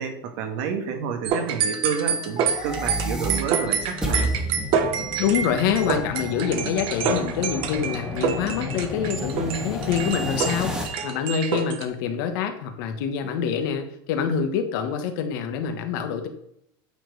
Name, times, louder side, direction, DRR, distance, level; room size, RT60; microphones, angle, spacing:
voice 1, 0.0-4.3, right 6 dB, 60° right, 5 dB, 1.7 m, -29 dB
sound 1, 1.2-11.8, right 6 dB, 45° right, 1.1 m, -27 dB
sound 2, 2.3-10.8, left 1 dB, 5° right, 1.9 m, -31 dB
voice 2, 5.2-16.3, left 7 dB, 65° left, 6 dB, 1.4 m, -26 dB
8.9 x 4.8 x 4.8 m, 0.76 s
supercardioid pair, 130°, 12 cm